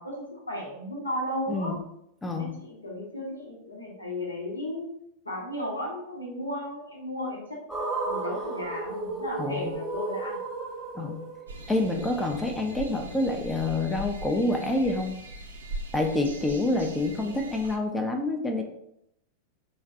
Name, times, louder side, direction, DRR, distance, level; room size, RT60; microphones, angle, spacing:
voice 1, 0.0-1.8 2.4-4.9 5.2-7.6 8.0-10.4 16.9-17.3, left 1 dB, 80° left, -2 dB, 0.9 m, -35 dB
voice 2, 2.2-2.6 9.4-9.7 11.0-11.3 11.7-15.1 15.9-18.6, left 2 dB, 10° left, 4 dB, 0.4 m, -27 dB
sound 1, 7.7-11.9, right 3 dB, 5° right, 0.9 m, -33 dB
sound 2, 11.5-17.8, right 1 dB, 70° right, 0.4 m, -40 dB
3.9 x 2.1 x 2.6 m, 0.76 s
figure-of-eight pair, 90°, 0 cm